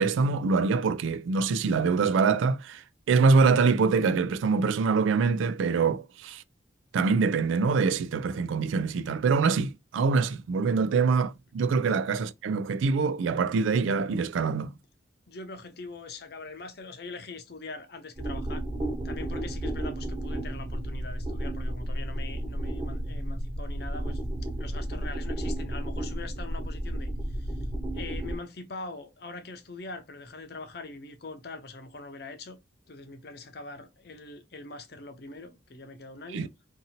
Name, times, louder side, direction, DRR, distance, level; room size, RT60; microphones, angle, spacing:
voice 1, 0.0-6.4 6.9-14.8 36.3-36.5, right 4 dB, 85° right, 0.3 m, -24 dB
voice 2, 15.3-18.6 19.0-24.2 24.6-27.1 27.4-27.5 27.9-32.6 32.9-36.5, left 3 dB, 55° left, 0.6 m, -42 dB
sound 1, 18.2-28.4, right 1 dB, 25° right, 1.1 m, -32 dB
2.7 x 2.6 x 2.7 m
head